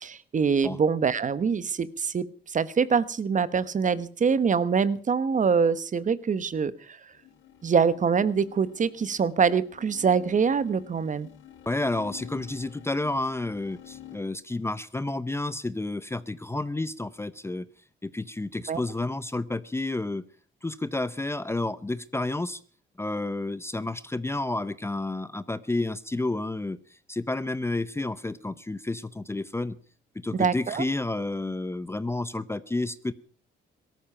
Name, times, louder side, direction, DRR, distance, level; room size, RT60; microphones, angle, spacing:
voice 1, 0.0-7.0 7.6-11.3 18.7-18.8 30.3-30.8, right 6 dB, 40° right, 16 dB, 1.1 m, -24 dB
sound 1, 7.1-14.2, left 10 dB, 70° left, 2.3 m, -49 dB
voice 2, 11.7-17.7 18.0-20.2 20.6-22.6 23.0-29.8 30.1-33.1, left 2 dB, 15° left, 16 dB, 0.7 m, -30 dB
17.5 x 13.5 x 5.6 m, 0.42 s
cardioid pair, 90°, 20 cm